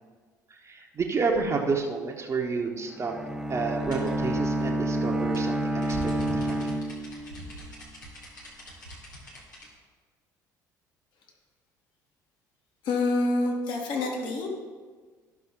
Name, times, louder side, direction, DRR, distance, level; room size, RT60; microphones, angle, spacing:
voice 1, 0.5-3.1 3.5-6.7, right 4 dB, 30° right, 0 dB, 1.0 m, -30 dB
Bowed string instrument, 2.9-7.6, right 1 dB, 5° right, 0.8 m, -29 dB
sound 1, 3.9-9.7, equal, 85° left, 1.6 m, -43 dB
voice 2, 12.8-14.5, left 2 dB, 55° left, 0 dB, 1.8 m, -27 dB
13.0 x 6.1 x 3.7 m, 1.5 s
figure-of-eight pair, 55°, 10 cm